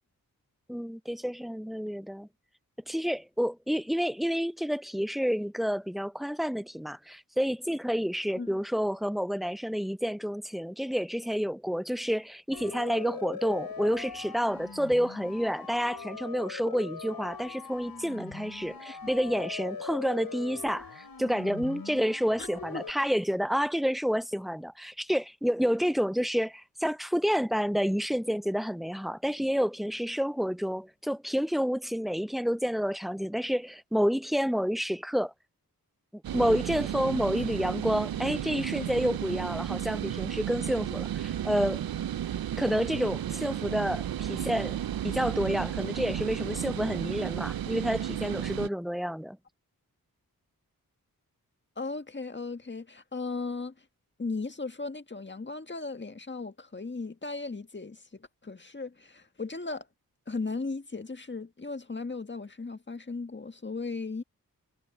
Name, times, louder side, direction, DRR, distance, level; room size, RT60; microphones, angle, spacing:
voice 1, 0.7-2.3 2.9-35.3 36.1-41.8 42.6-49.4, equal, ahead, 0.5 m, -29 dB
Siren, 12.5-22.9, left 5 dB, 70° left, 8.0 m, -42 dB
sound 1, 36.2-48.7, right 11 dB, 70° right, 0.6 m, -33 dB
voice 2, 51.8-53.7 54.2-59.9 60.3-64.2, left 3 dB, 30° left, 1.7 m, -36 dB
cardioid pair, 50°, 37 cm